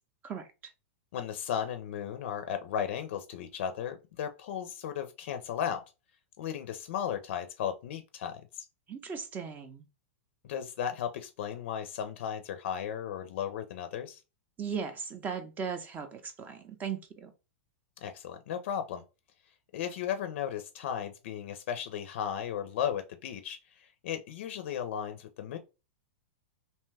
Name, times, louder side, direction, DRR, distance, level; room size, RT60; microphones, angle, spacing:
voice 1, 0.2-0.7 8.9-9.9 14.6-17.3, right 6 dB, 25° right, 0.5 m, -38 dB
voice 2, 1.1-5.8 6.4-8.7 10.4-14.2 18.0-19.0 19.7-25.6, left 9 dB, 65° left, 0.4 m, -35 dB
2.7 x 2.2 x 3.2 m
hypercardioid pair, 130°, 7 cm